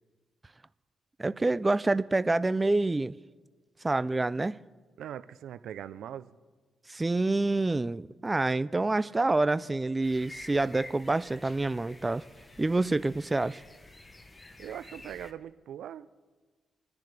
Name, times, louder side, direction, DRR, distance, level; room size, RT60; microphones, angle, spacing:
voice 1, 1.2-3.2 3.8-4.6 6.9-12.2 12.6-13.6, right 2 dB, 20° right, 0.4 m, -27 dB
voice 2, 5.0-6.4 14.6-16.1, right 10 dB, 80° right, 0.5 m, -41 dB
sound 1, 10.0-15.3, left 2 dB, 25° left, 1.1 m, -50 dB
27.0 x 10.5 x 3.4 m
cardioid pair, 75°, 0 cm